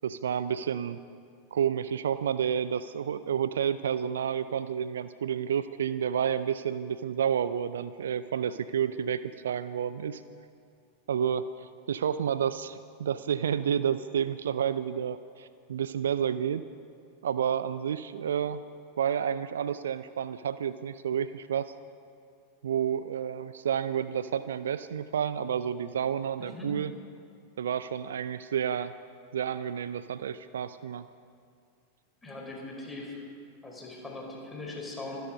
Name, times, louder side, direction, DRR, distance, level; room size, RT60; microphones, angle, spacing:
voice 1, 0.0-1.0 1.5-10.2 11.1-16.6 17.2-18.6 19.0-21.7 22.6-26.9 27.6-28.9 29.3-31.0, right 8 dB, 65° right, 14 dB, 0.4 m, -30 dB
voice 2, 26.4-26.7 32.2-33.2 33.6-35.2, left 2 dB, 10° left, -2 dB, 4.7 m, -40 dB
25.0 x 10.5 x 5.4 m, 2.3 s
figure-of-eight pair, 90°, 0 cm